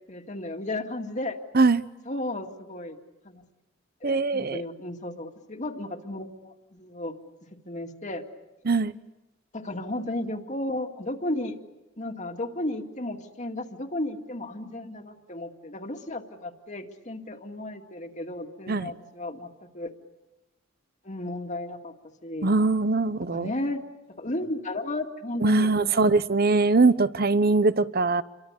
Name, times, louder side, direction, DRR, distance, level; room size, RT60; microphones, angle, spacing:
voice 1, 0.1-1.4 2.1-3.0 3.2-3.4 4.0-7.1 7.7-8.2 9.5-11.6 12.0-19.5 19.7-19.9 21.0-21.9 22.2-22.5 23.3-23.8 24.2-26.2, left 1 dB, 35° left, 5 dB, 2.2 m, -34 dB
voice 2, 4.0-4.6 8.6-8.9 18.7-18.9 22.4-23.5 25.4-28.2, right 3 dB, 50° right, 16 dB, 0.9 m, -22 dB
28.5 x 24.0 x 8.2 m, 1.0 s
head